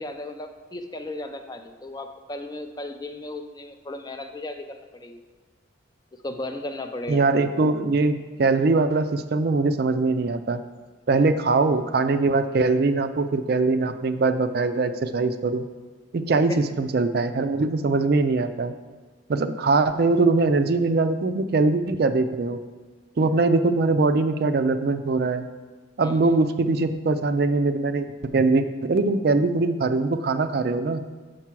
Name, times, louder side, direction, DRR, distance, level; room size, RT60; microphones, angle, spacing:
voice 1, 0.0-5.2 6.1-7.2 16.5-16.6 19.6-19.8 26.0-26.2, left 1 dB, 20° left, 7 dB, 0.4 m, -35 dB
voice 2, 7.1-10.6 11.1-15.6 16.1-18.7 19.3-22.6 23.2-25.5 26.0-28.1 28.3-31.0, right 3 dB, 50° right, 10 dB, 0.4 m, -22 dB
6.5 x 4.7 x 5.9 m, 1.4 s
head